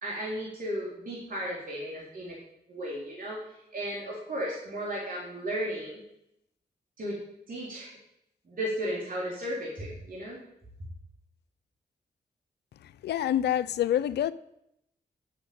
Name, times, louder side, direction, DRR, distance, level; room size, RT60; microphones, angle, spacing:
voice 1, 0.0-2.4 2.7-6.0 7.0-7.2 7.5-7.9 8.5-10.4, equal, 55° right, 4.0 m, -35 dB
voice 2, 13.0-14.3, left 11 dB, 80° left, 0.5 m, -26 dB
8.7 x 7.1 x 8.8 m
supercardioid pair, 40°, 17 cm